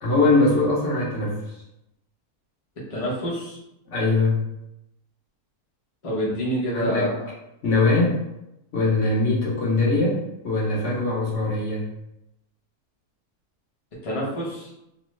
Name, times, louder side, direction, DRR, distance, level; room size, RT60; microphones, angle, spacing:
voice 1, 0.0-1.6 3.9-4.4 6.7-7.1 7.6-8.2 8.7-11.9, left 2 dB, 60° left, -5 dB, 1.0 m, -22 dB
voice 2, 2.9-3.6 6.0-7.1 14.0-14.7, equal, 35° left, -6 dB, 0.6 m, -27 dB
3.1 x 2.0 x 3.1 m, 0.85 s
omnidirectional pair, 1.6 m